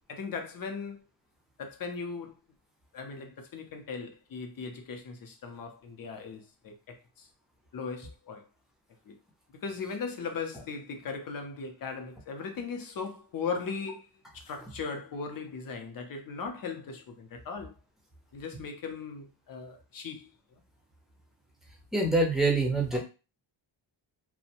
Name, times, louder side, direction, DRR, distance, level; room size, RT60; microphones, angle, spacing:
voice 1, 0.1-1.0 1.6-2.4 2.9-7.3 7.7-8.5 9.1-9.2 9.6-14.1 14.3-17.7 18.3-20.6, left 5 dB, 45° left, 0.6 m, -38 dB
voice 2, 21.9-23.0, right 2 dB, ahead, 0.5 m, -25 dB
2.5 x 2.1 x 2.8 m
wide cardioid pair, 170°, 48 cm